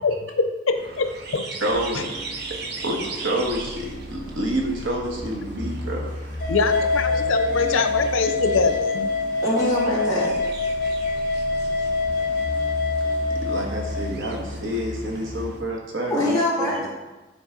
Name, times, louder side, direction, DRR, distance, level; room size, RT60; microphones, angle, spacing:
voice 1, 0.0-1.5 6.5-9.1, left 4 dB, 90° left, 8 dB, 0.6 m, -24 dB
sound 1, 0.7-15.6, right 3 dB, 55° right, 0.7 m, -40 dB
voice 2, 1.6-2.1 2.8-6.1 13.4-16.9, right 1 dB, 70° right, 0 dB, 1.4 m, -28 dB
sound 2, 1.7-15.4, left 1 dB, 30° right, 2.3 m, -36 dB
sound 3, 6.4-14.1, left 3 dB, 45° left, 1.4 m, -25 dB
voice 3, 9.4-10.4 16.1-16.9, left 1 dB, 20° left, -8 dB, 2.6 m, -23 dB
9.8 x 4.4 x 3.9 m, 1.1 s
head